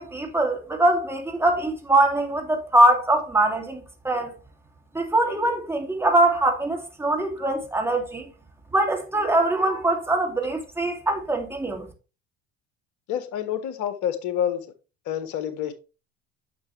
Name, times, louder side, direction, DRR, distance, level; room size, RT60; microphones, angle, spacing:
voice 1, 0.0-4.3 4.9-8.2 8.7-11.9, right 1 dB, 5° right, 2.9 m, -22 dB
voice 2, 13.1-14.6 15.0-15.7, left 9 dB, 60° left, 1.5 m, -28 dB
9.4 x 6.1 x 3.4 m
hypercardioid pair, 70°, 35 cm